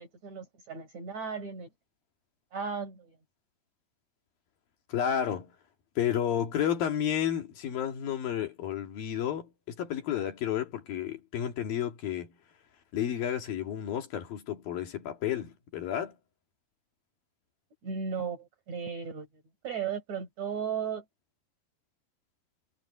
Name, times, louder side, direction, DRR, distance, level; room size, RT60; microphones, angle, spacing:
voice 1, 0.0-1.7 2.5-3.2 17.8-21.0, right 6 dB, 50° right, 6.4 m, -36 dB
voice 2, 4.9-5.5 6.0-12.3 12.9-16.2, left 9 dB, 75° left, 4.0 m, -31 dB
omnidirectional pair, 4.2 m